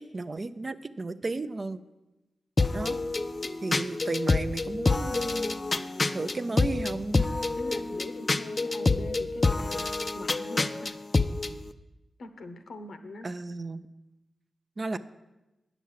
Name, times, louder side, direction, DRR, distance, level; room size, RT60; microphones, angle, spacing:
voice 1, 0.0-1.8 2.7-3.0 3.6-5.6 6.1-7.3 13.2-13.8 14.8-15.0, right 3 dB, 40° right, 12 dB, 0.4 m, -34 dB
sound 1, 2.6-11.5, left 3 dB, 35° left, 0.4 m, -27 dB
voice 2, 2.7-3.2 7.6-9.9 10.1-11.0 12.2-13.3, left 2 dB, 75° left, 8 dB, 0.9 m, -42 dB
9.1 x 6.0 x 7.4 m, 1.0 s
wide cardioid pair, 85°, 0 cm